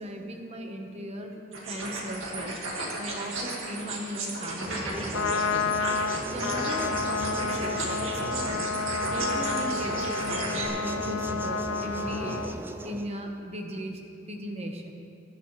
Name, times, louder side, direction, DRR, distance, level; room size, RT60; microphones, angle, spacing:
voice 1, 0.0-2.6 3.0-5.7 6.3-8.7 9.1-12.4 12.8-14.0 14.3-14.9, right 1 dB, 30° right, 2 dB, 1.2 m, -37 dB
sound 1, 1.5-10.7, right 2 dB, 85° right, 2.1 m, -35 dB
sound 2, 4.7-13.1, right 1 dB, 10° right, 0.4 m, -38 dB
Trumpet, 5.0-12.6, left 4 dB, 75° left, 0.6 m, -30 dB
20.5 x 10.0 x 3.3 m, 2.6 s
head